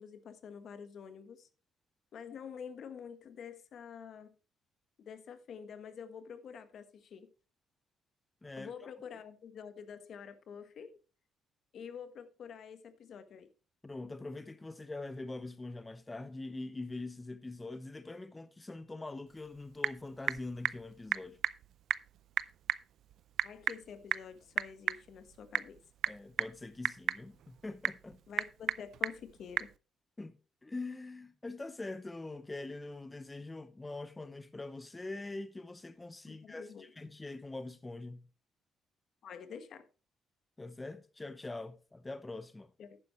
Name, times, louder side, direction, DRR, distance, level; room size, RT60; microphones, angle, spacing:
voice 1, 0.0-1.5 2.1-4.3 5.0-7.3 8.6-11.0 11.7-13.5 23.4-25.8 28.3-29.7 36.3-36.9 39.2-39.8 42.8-43.0, left 7 dB, 65° left, 1.2 m, -48 dB
voice 2, 8.4-8.9 13.8-21.4 26.1-28.2 30.2-30.4 30.6-38.2 40.6-42.7, left 2 dB, 20° left, 0.6 m, -43 dB
Typing / Telephone, 19.3-29.8, right 10 dB, 70° right, 0.4 m, -37 dB
11.5 x 9.4 x 3.1 m
cardioid pair, 90°, 0 cm